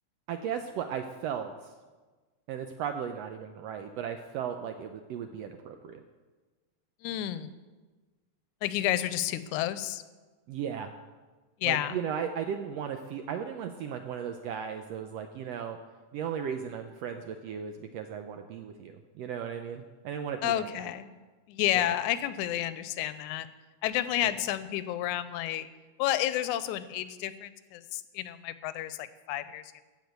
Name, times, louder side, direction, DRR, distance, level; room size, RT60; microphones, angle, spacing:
voice 1, 0.3-1.7 2.5-6.0 10.5-10.9 11.6-15.8 16.1-20.9 21.7-21.9 24.2-24.3, right 8 dB, 80° right, 6 dB, 1.5 m, -36 dB
voice 2, 7.0-7.5 8.6-10.0 11.6-12.0 20.4-21.1 21.5-23.5 23.8-25.7 26.0-29.6, left 12 dB, 85° left, 14 dB, 2.0 m, -30 dB
15.0 x 5.1 x 7.9 m, 1.3 s
omnidirectional pair, 3.5 m